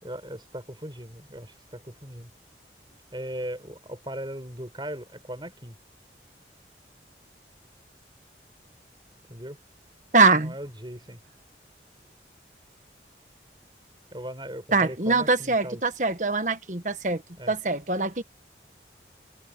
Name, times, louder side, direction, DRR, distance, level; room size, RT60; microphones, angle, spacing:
voice 1, 0.0-2.3 3.1-5.8 9.3-9.6 10.3-11.2 14.1-15.8 17.4-17.5, equal, 25° right, 5.4 m, -38 dB
voice 2, 10.1-10.5 14.7-17.2 17.5-18.2, right 3 dB, 45° right, 1.5 m, -23 dB
head